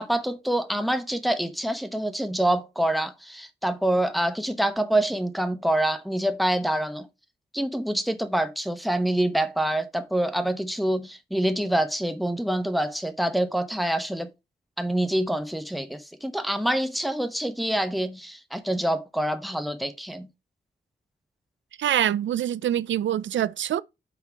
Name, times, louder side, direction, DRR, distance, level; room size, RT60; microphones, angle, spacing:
voice 1, 0.0-7.1 7.5-14.3 14.8-20.3, right 1 dB, ahead, 0.9 m, -26 dB
voice 2, 21.8-23.8, right 11 dB, 80° right, 0.4 m, -25 dB
6.0 x 5.5 x 4.5 m
wide cardioid pair, 140°, 19 cm